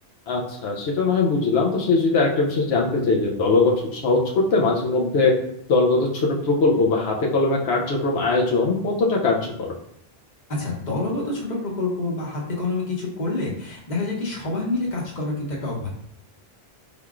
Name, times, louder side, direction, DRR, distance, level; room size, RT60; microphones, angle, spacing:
voice 1, 0.3-5.3 5.7-9.7, left 3 dB, 85° left, -2 dB, 0.9 m, -21 dB
voice 2, 10.5-15.9, left 2 dB, 45° left, -3 dB, 1.1 m, -27 dB
4.4 x 3.5 x 2.4 m, 0.71 s
omnidirectional pair, 1.1 m